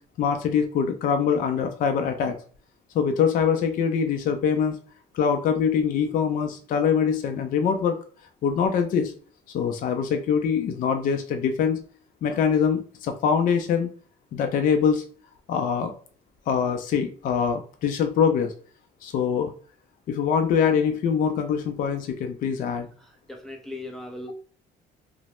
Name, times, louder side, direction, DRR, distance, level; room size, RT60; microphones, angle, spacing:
voice 1, 0.2-2.4 2.9-4.8 5.1-8.0 8.4-9.1 9.5-11.8 12.2-13.9 14.3-15.0 15.5-15.9 16.5-18.5 19.0-19.5 20.1-22.9, left 7 dB, 55° left, 6 dB, 0.4 m, -23 dB
voice 2, 23.0-24.3, left 2 dB, ahead, 1 dB, 0.6 m, -38 dB
3.0 x 2.0 x 2.9 m, 0.42 s
cardioid pair, 110°, 17 cm